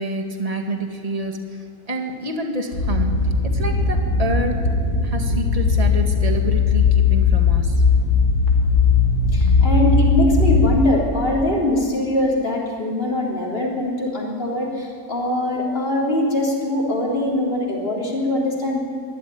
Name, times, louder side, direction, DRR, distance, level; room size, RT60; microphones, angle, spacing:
voice 1, 0.0-3.1 3.5-4.5 5.0-7.8, right 2 dB, 25° right, 3 dB, 2.1 m, -28 dB
sound 1, 2.7-10.7, left 4 dB, 80° left, 3.1 m, -18 dB
voice 2, 9.3-18.8, left 1 dB, 35° left, -3 dB, 3.9 m, -22 dB
22.5 x 13.5 x 9.3 m, 2.2 s
omnidirectional pair, 1.6 m